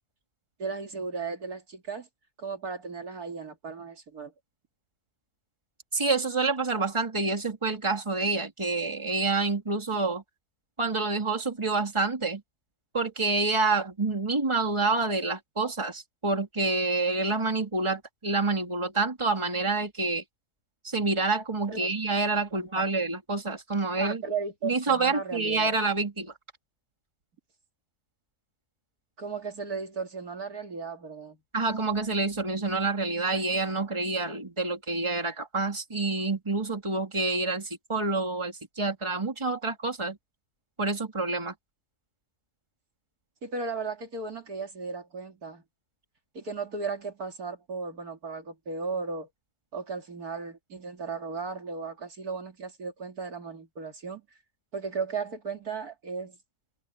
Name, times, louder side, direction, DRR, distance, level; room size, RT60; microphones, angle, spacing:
voice 1, 0.6-2.1 2.4-4.3 21.7-21.9 22.5-22.8 24.0-25.7 29.2-31.4 43.4-45.6 46.3-49.3 49.7-54.2 54.7-56.4, right 4 dB, 65° right, 3.0 m, -35 dB
voice 2, 5.9-10.2 10.8-12.4 12.9-20.2 20.8-24.2 24.6-26.3 31.5-40.2 40.8-41.5, right 3 dB, 15° right, 2.7 m, -28 dB
open air
omnidirectional pair, 1.7 m